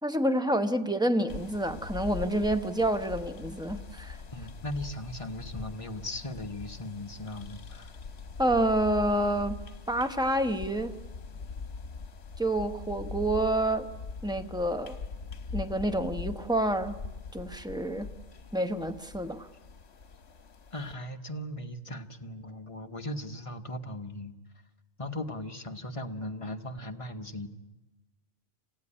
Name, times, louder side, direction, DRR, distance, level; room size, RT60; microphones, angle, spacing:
voice 1, 0.0-4.2 8.4-9.6 9.9-10.9 12.4-13.9 14.2-15.0 15.5-16.9 17.3-18.1 18.5-19.5, right 1 dB, 5° right, 8 dB, 0.9 m, -28 dB
sound 1, 1.3-20.9, left 4 dB, 70° left, 1.4 m, -42 dB
voice 2, 4.3-7.9 20.7-24.3 25.0-27.5, left 1 dB, 30° left, 6 dB, 1.2 m, -38 dB
27.0 x 16.0 x 10.0 m, 1.1 s
omnidirectional pair, 1.2 m